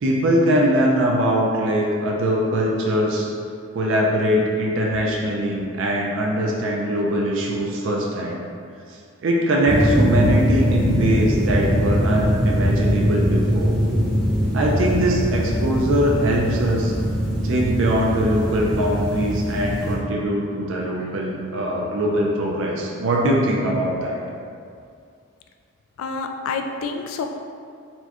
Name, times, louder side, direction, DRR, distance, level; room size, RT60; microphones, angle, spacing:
voice 1, 0.0-3.3 3.7-8.4 9.2-13.8 14.5-16.9 17.4-24.2, right 1 dB, 70° right, -2 dB, 0.4 m, -22 dB
sound 1, 9.7-20.0, equal, 5° left, 0.6 m, -21 dB
voice 2, 26.0-27.3, left 4 dB, 85° left, 5 dB, 0.3 m, -28 dB
4.3 x 2.2 x 2.9 m, 2.3 s
head